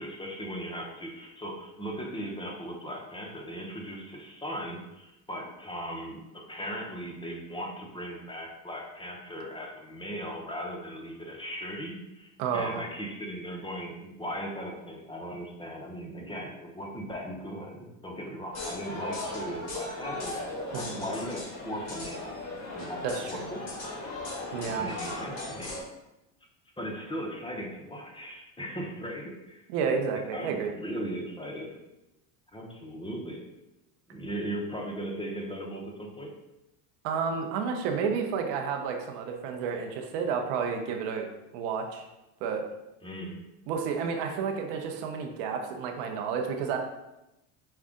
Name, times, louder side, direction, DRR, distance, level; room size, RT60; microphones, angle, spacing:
voice 1, 0.0-20.3 20.7-22.3 22.7-23.0 23.3-23.4 24.6-25.8 26.8-29.6 30.3-31.8 32.5-33.4 34.1-36.3 43.0-43.4, equal, 10° left, -1 dB, 0.8 m, -38 dB
voice 2, 12.4-12.8 20.7-21.0 23.0-23.5 24.5-24.9 29.7-30.7 37.0-41.3 41.5-42.1 42.4-42.6 43.7-46.8, right 6 dB, 70° right, 4 dB, 0.8 m, -31 dB
sound 1, 18.5-25.8, left 1 dB, 35° left, 1.5 m, -37 dB
5.4 x 2.4 x 3.6 m, 0.92 s
supercardioid pair, 100°, 43 cm